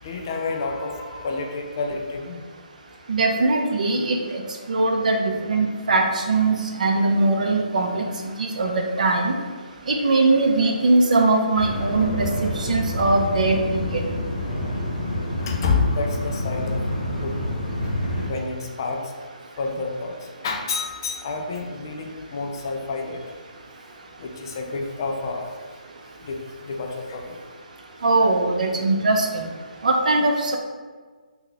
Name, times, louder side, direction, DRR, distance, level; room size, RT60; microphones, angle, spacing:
voice 1, 0.0-2.4 15.4-16.8 17.2-17.6 18.3-19.0 19.6-20.2 20.4-23.2 24.2-25.5 26.2-27.4, left 4 dB, 30° left, 2 dB, 0.3 m, -29 dB
voice 2, 3.1-4.2 4.7-8.1 8.4-8.7 9.0-9.3 9.9-14.0 28.0-29.3 29.8-30.6, right 2 dB, 65° right, 2 dB, 0.5 m, -21 dB
sound 1, 11.6-18.3, left 1 dB, 60° left, 0.8 m, -28 dB
2.7 x 2.3 x 3.8 m, 1.4 s
hypercardioid pair, 170°, 4 cm